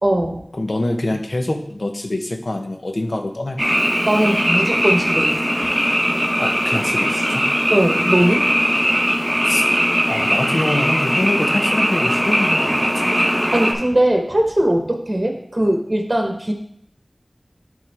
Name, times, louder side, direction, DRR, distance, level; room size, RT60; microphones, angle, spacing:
voice 1, 0.0-0.4 4.1-5.3 7.7-8.5 13.5-16.5, right 1 dB, 40° right, 3 dB, 1.0 m, -19 dB
voice 2, 0.5-3.6 6.4-7.5 9.4-9.6 10.1-13.3, left 1 dB, 65° left, 4 dB, 0.8 m, -25 dB
Frog, 3.6-13.7, equal, 5° right, 1.1 m, -19 dB
10.5 x 3.6 x 3.4 m, 0.68 s
wide cardioid pair, 55°, 0 cm